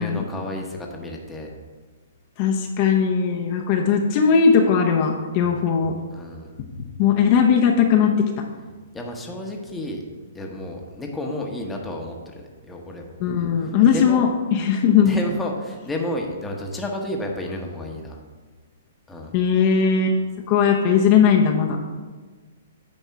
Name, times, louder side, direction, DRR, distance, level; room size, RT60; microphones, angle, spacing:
voice 1, 0.0-1.5 6.1-6.5 8.9-10.0 10.3-13.1 13.8-14.2 15.0-18.2 19.1-19.4, left 1 dB, 10° left, 0 dB, 0.9 m, -31 dB
voice 2, 2.4-5.9 7.0-8.1 13.2-15.2 19.3-20.2 20.5-21.8, left 6 dB, 35° left, 1 dB, 0.7 m, -18 dB
9.2 x 3.5 x 5.5 m, 1.4 s
hypercardioid pair, 150°, 0 cm